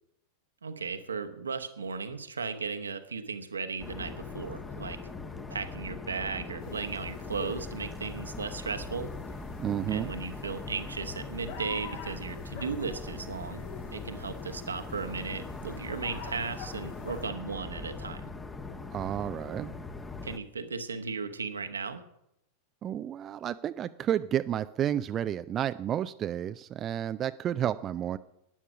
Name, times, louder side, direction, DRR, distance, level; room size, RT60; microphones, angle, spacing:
voice 1, 0.6-5.0 5.5-9.1 9.9-18.3 20.2-22.0, right 5 dB, 75° right, 8 dB, 1.2 m, -36 dB
sound 1, 3.8-20.4, left 3 dB, 15° left, 1.1 m, -41 dB
sound 2, 6.6-17.3, left 5 dB, 50° left, 2.0 m, -48 dB
voice 2, 9.6-10.1 18.9-19.7 22.8-28.2, right 10 dB, 30° right, 12 dB, 0.4 m, -31 dB
12.0 x 9.7 x 6.2 m, 0.80 s
figure-of-eight pair, 90°, 0 cm